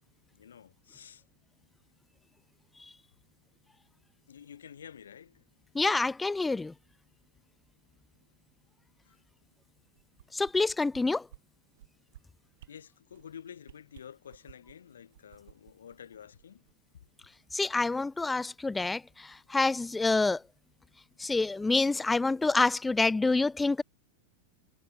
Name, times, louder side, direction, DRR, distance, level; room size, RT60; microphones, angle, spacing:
voice 1, 0.3-1.2 4.3-5.4 9.0-9.2 12.7-16.6, left 8 dB, 65° left, 3.3 m, -50 dB
voice 2, 5.7-6.7 10.3-11.3 17.5-20.4 21.2-23.8, left 3 dB, 10° left, 0.4 m, -27 dB
sound 1, 9.9-11.0 11.3-11.4 11.7-12.2 12.6-12.7 13.1-13.3 13.6-14.7 15.1-16.7 17.1-17.2, right 14 dB, 55° right, 3.1 m, -54 dB
figure-of-eight pair, 90°, 0 cm